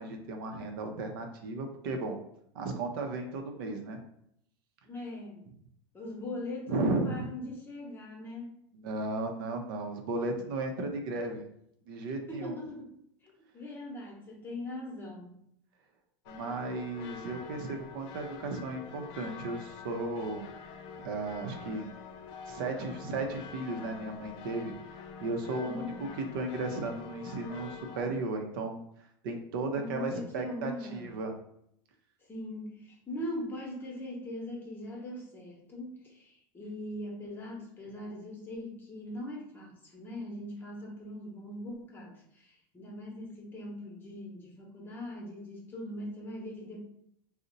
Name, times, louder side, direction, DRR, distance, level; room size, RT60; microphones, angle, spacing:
voice 1, 0.0-2.2 2.5-4.0 6.7-7.3 8.7-11.4 11.9-12.6 16.3-20.5 21.0-21.9 22.5-25.8 26.2-28.8 29.2-31.3, right 2 dB, 80° right, 4 dB, 0.6 m, -35 dB
voice 2, 4.9-5.5 5.9-8.5 12.3-12.9 13.2-15.3 25.6-26.1 29.7-31.1 32.3-46.8, left 1 dB, 20° left, -2 dB, 0.8 m, -41 dB
sound 1, 16.3-28.0, left 6 dB, 50° left, 0.4 m, -46 dB
2.6 x 2.1 x 3.8 m, 0.73 s
supercardioid pair, 140°, 11 cm